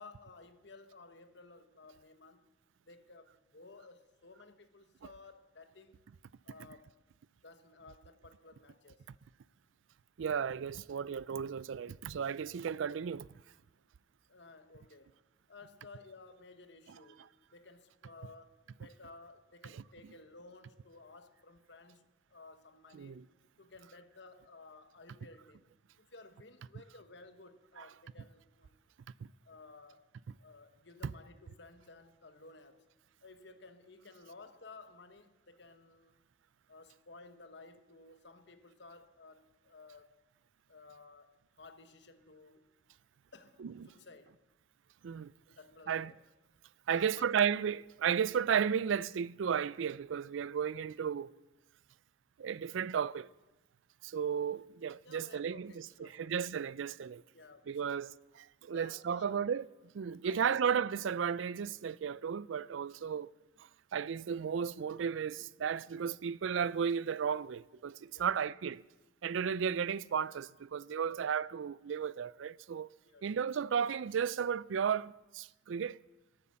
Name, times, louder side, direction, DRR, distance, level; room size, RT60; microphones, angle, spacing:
voice 1, 0.0-2.5 2.9-6.0 6.4-6.9 7.4-9.0 14.3-15.2 15.5-23.2 23.6-25.7 26.0-28.8 29.4-30.1 30.4-32.8 33.2-36.2 36.7-40.1 40.7-42.8 43.3-44.4 45.4-46.2 46.9-47.3 55.0-56.4 57.3-58.1 58.7-59.4 60.2-60.7 68.1-68.4 69.7-69.8 71.1-71.3 73.0-73.5, left 3 dB, 60° left, 1.1 m, -56 dB
voice 2, 10.2-13.3 23.0-23.2 27.8-27.9 43.6-43.7 45.0-45.3 45.9-46.1 46.9-51.3 52.4-53.3 54.0-57.2 57.7-58.1 58.6-59.7 59.9-63.3 63.9-68.8 69.2-72.9 73.2-76.0, right 7 dB, 80° right, 0.4 m, -34 dB
18.5 x 8.0 x 7.5 m
head